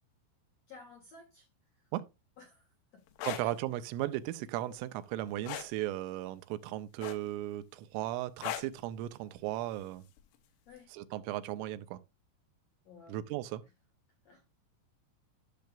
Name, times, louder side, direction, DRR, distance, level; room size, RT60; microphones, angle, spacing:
voice 1, 0.7-1.5 1.7-1.9 2.4-3.0 3.4-3.5 4.7-4.9 10.7-10.9 12.8-13.2 14.2-14.4, left 4 dB, 55° left, 1.9 m, -55 dB
sound 1, 3.1-3.4 5.4-5.7 7.0-7.4 8.4-8.8 10.2-10.4, left 12 dB, 80° left, 3.4 m, -37 dB
voice 2, 3.2-10.0 10.9-12.0 13.1-13.6, right 14 dB, 90° right, 3.2 m, -36 dB
12.5 x 6.6 x 2.5 m
omnidirectional pair, 5.7 m